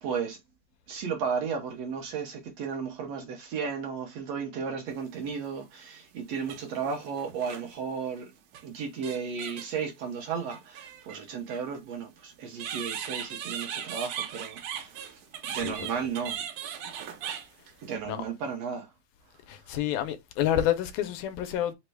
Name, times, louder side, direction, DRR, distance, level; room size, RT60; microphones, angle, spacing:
voice 1, 0.0-0.4 0.9-8.3 8.6-16.4 17.8-18.9, right 6 dB, 65° right, 1.8 m, -34 dB
sound 1, 5.3-5.4 6.4-7.8 8.5-8.7 9.0-9.8 10.5-11.6 12.6-17.9, right 9 dB, 85° right, 2.3 m, -38 dB
voice 2, 15.5-16.0 18.1-18.3 19.5-21.7, left 11 dB, 90° left, 2.1 m, -29 dB
5.2 x 2.2 x 4.5 m
omnidirectional pair, 3.5 m